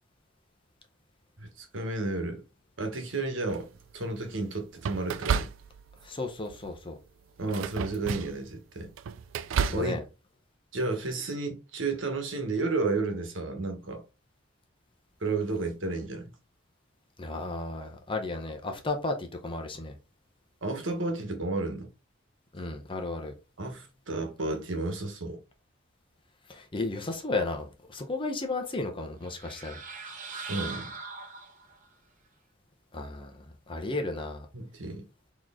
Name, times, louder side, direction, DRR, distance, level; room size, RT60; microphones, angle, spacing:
voice 1, 1.4-2.4 2.8-5.5 7.4-8.9 9.7-10.0 10.7-14.0 15.2-16.3 20.6-21.9 23.6-25.4 30.5-30.9 33.8-34.0 34.5-35.0, right 3 dB, 70° right, 1.2 m, -32 dB
sound 1, 3.5-3.9 4.8-6.1 6.4-6.8 7.4-8.5 8.8-9.9, right 7 dB, 90° right, 0.4 m, -32 dB
voice 2, 6.0-7.0 9.7-10.0 17.2-20.0 22.5-23.3 26.5-29.8 32.9-34.5, left 2 dB, 25° left, 0.8 m, -34 dB
sound 2, 29.2-31.9, right 4 dB, 40° right, 0.9 m, -41 dB
4.3 x 3.1 x 3.6 m
head